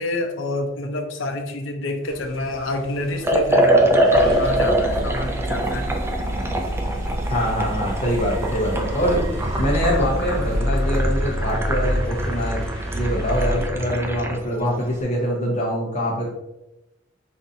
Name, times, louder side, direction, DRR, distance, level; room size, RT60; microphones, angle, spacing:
voice 1, 0.0-5.9, left 2 dB, 70° left, 4 dB, 0.6 m, -28 dB
sound 1, 2.0-13.7, equal, 5° left, 0.9 m, -30 dB
Liquid, 3.2-14.4, right 1 dB, 15° right, 0.4 m, -24 dB
sound 2, 4.1-10.6, right 1 dB, 85° right, 0.7 m, -29 dB
voice 2, 7.3-9.2 9.6-12.6 12.9-16.3, equal, 35° left, -3 dB, 0.8 m, -24 dB
5.3 x 2.5 x 2.7 m, 0.95 s
head